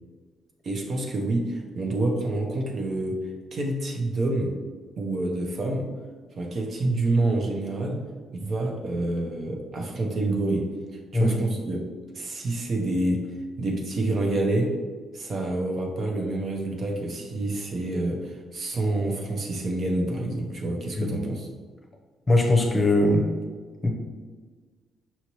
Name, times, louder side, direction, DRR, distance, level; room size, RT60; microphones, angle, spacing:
voice 1, 0.6-3.2 3.5-4.5 5.0-5.9 6.4-8.0 8.3-11.8 12.1-13.2 13.6-14.7 15.1-21.5, right 2 dB, 50° right, 1 dB, 0.7 m, -27 dB
voice 2, 22.3-23.3 23.8-23.9, left 2 dB, 25° left, 1 dB, 0.7 m, -21 dB
5.7 x 2.7 x 3.0 m, 1.5 s
cardioid pair, 90°, 0 cm